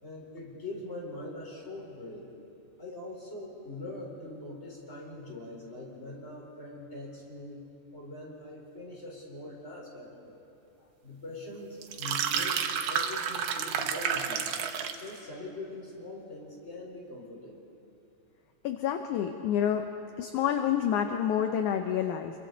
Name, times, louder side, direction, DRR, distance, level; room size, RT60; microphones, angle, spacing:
voice 1, 0.0-2.3 2.8-7.6 7.9-10.4 11.0-14.5 14.9-17.6, left 2 dB, 20° left, -3 dB, 4.2 m, -42 dB
sound 1, 11.8-15.1, right 8 dB, 80° right, 2.7 m, -30 dB
voice 2, 18.6-19.8 20.2-22.3, left 9 dB, 75° left, 6 dB, 2.0 m, -28 dB
30.0 x 23.0 x 4.0 m, 2.8 s
omnidirectional pair, 4.1 m